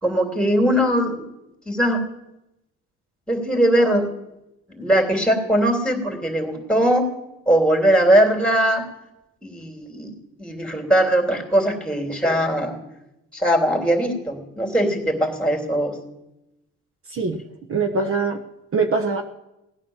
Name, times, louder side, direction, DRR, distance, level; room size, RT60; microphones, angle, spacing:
voice 1, 0.0-1.3 1.7-2.1 3.3-4.1 4.7-7.1 7.5-8.8 9.4-12.8 13.3-16.0, right 1 dB, 5° left, 3 dB, 3.2 m, -20 dB
voice 2, 17.7-18.4 18.7-19.2, right 4 dB, 45° right, 5 dB, 1.2 m, -22 dB
17.5 x 9.4 x 7.3 m, 0.92 s
cardioid pair, 90°, 30 cm